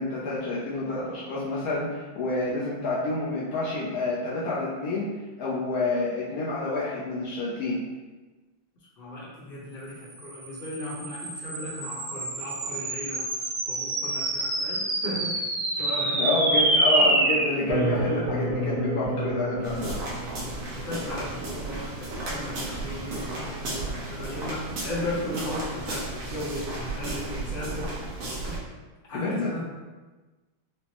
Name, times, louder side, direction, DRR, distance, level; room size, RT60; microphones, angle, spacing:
voice 1, 0.0-5.1 5.4-7.8 16.1-19.9 29.1-29.7, left 2 dB, 85° left, -6 dB, 0.8 m, -28 dB
voice 2, 9.0-15.5 15.7-16.4 20.7-28.7 29.1-29.7, left 1 dB, 40° left, -7 dB, 0.8 m, -36 dB
sound 1, 10.2-20.9, right 1 dB, 85° right, 0.7 m, -27 dB
sound 2, 19.6-28.6, right 2 dB, 65° right, 1.3 m, -34 dB
4.8 x 2.0 x 2.9 m, 1.2 s
omnidirectional pair, 2.3 m